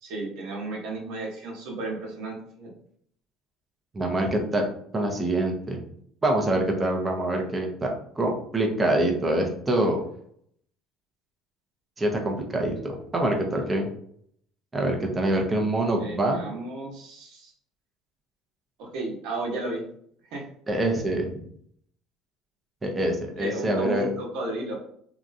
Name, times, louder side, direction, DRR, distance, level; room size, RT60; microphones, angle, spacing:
voice 1, 0.0-2.7 16.0-17.5 18.8-19.8 20.3-20.5 23.4-24.8, right 2 dB, 75° right, -1 dB, 1.1 m, -34 dB
voice 2, 3.9-4.7 4.9-5.8 6.2-10.0 12.0-13.9 14.7-16.4 20.7-21.3 22.8-24.1, right 1 dB, 20° right, 1 dB, 0.7 m, -25 dB
2.9 x 2.4 x 2.6 m, 0.65 s
supercardioid pair, 100°, 0 cm